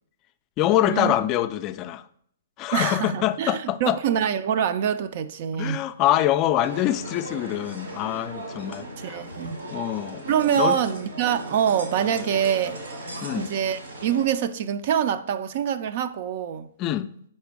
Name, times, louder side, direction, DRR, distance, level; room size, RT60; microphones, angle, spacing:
voice 1, 0.6-2.1 2.6-4.0 5.5-9.3 9.7-10.2 10.6-10.8 13.2-13.5 16.8-17.1, left 12 dB, 30° left, 0.3 m, -25 dB
voice 2, 2.7-5.8 9.0-9.6 10.3-12.8 13.4-16.7, right 9 dB, 50° right, 0.3 m, -25 dB
sound 1, 6.6-14.2, right 1 dB, 85° right, 1.6 m, -37 dB
5.0 x 4.3 x 4.6 m
hypercardioid pair, 120°, 0 cm